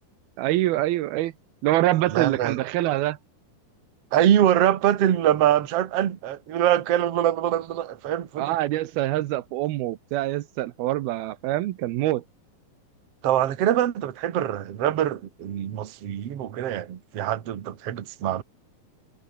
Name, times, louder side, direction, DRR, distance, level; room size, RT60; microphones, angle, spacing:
voice 1, 0.4-1.3 1.6-3.2 8.4-12.2, right 15 dB, 85° right, 2.9 m, -25 dB
voice 2, 2.1-2.6 4.1-8.6 13.2-18.4, right 11 dB, 50° right, 2.3 m, -23 dB
omnidirectional pair, 4.3 m